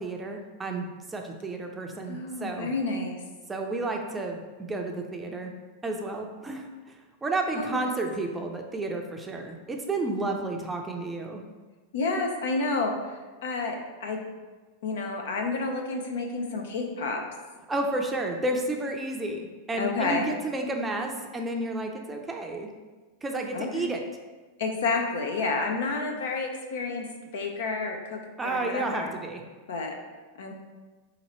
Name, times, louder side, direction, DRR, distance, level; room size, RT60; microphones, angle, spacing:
voice 1, 0.0-2.7 3.5-5.5 5.8-7.0 7.2-11.4 17.7-22.7 23.2-24.0 28.4-29.4, right 2 dB, 15° right, 2 dB, 0.5 m, -31 dB
voice 2, 2.1-3.2 7.5-7.9 11.9-13.0 13.4-14.2 14.8-17.2 19.8-20.3 23.5-23.9 24.6-27.0 27.3-29.1 29.7-30.0 30.4-30.5, left 3 dB, 80° left, 3 dB, 0.7 m, -30 dB
3.9 x 2.9 x 4.2 m, 1.3 s
supercardioid pair, 130°, 0 cm